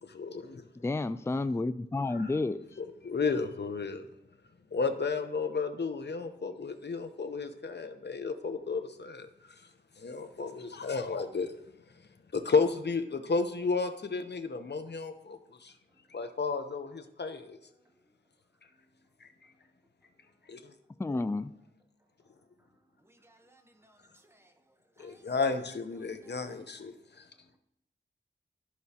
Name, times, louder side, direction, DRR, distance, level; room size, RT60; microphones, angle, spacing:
voice 1, 0.0-0.7 2.1-2.3 2.8-4.1 4.7-9.7 10.0-11.5 12.3-15.7 16.1-17.6 19.2-19.3 20.5-20.7 21.1-21.2 25.0-27.3, left 4 dB, 55° left, 0.8 m, -33 dB
voice 2, 0.8-2.7 21.0-21.5, left 2 dB, 15° left, 0.3 m, -31 dB
voice 3, 23.1-24.0 24.3-24.5 25.0-25.2 26.2-26.3, right 1 dB, 10° right, 0.9 m, -62 dB
13.0 x 4.6 x 2.8 m
wide cardioid pair, 60°, 21 cm